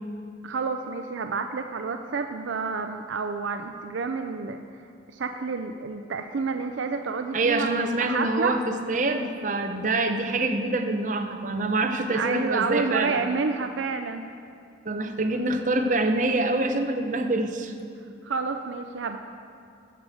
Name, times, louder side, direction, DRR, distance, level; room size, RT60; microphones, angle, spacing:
voice 1, 0.4-4.6 5.1-8.6 12.1-14.3 18.2-19.2, right 4 dB, 85° right, 6 dB, 0.5 m, -29 dB
voice 2, 7.3-13.2 14.8-17.7, right 2 dB, 40° right, 5 dB, 0.8 m, -25 dB
13.5 x 5.0 x 7.7 m, 2.5 s
head